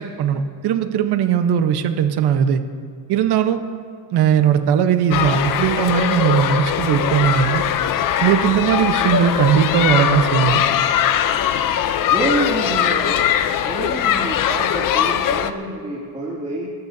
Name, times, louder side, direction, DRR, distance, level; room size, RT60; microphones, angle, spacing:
voice 1, 0.0-2.6 3.1-3.6 4.1-7.6 8.2-10.6, right 8 dB, 60° right, 8 dB, 1.2 m, -18 dB
sound 1, 5.1-15.5, left 9 dB, 45° left, 0.8 m, -20 dB
voice 2, 12.1-13.3 13.6-16.7, right 2 dB, 15° right, -6 dB, 2.6 m, -27 dB
29.0 x 14.0 x 2.8 m, 2.3 s
cardioid pair, 135°, 45 cm